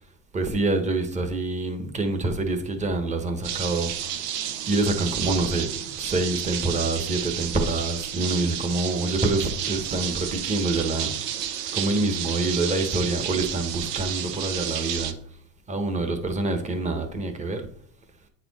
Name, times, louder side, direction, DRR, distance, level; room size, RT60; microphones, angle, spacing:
voice 1, 0.3-3.9 4.2-11.3 11.7-15.2 15.7-17.7, right 2 dB, 15° right, 1.0 m, -26 dB
sound 1, 3.4-15.1, right 10 dB, 90° right, 1.0 m, -31 dB
9.0 x 4.3 x 4.1 m
supercardioid pair, 135°, 47 cm